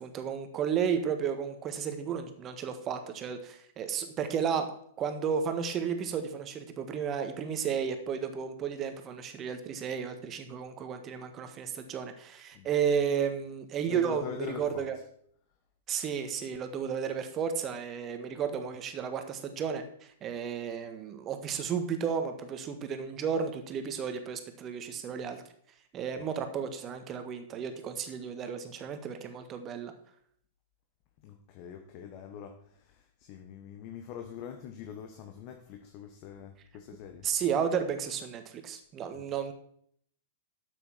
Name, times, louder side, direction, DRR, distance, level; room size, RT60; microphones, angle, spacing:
voice 1, 0.0-4.7 5.0-14.9 15.9-19.8 20.2-25.4 25.9-29.9 37.2-39.5, right 7 dB, 25° right, 7 dB, 1.5 m, -33 dB
voice 2, 13.9-14.9 26.2-26.3 31.2-37.3 39.1-39.2, left 8 dB, 40° left, 4 dB, 1.3 m, -44 dB
12.5 x 8.2 x 4.6 m, 0.65 s
figure-of-eight pair, 105°, 0 cm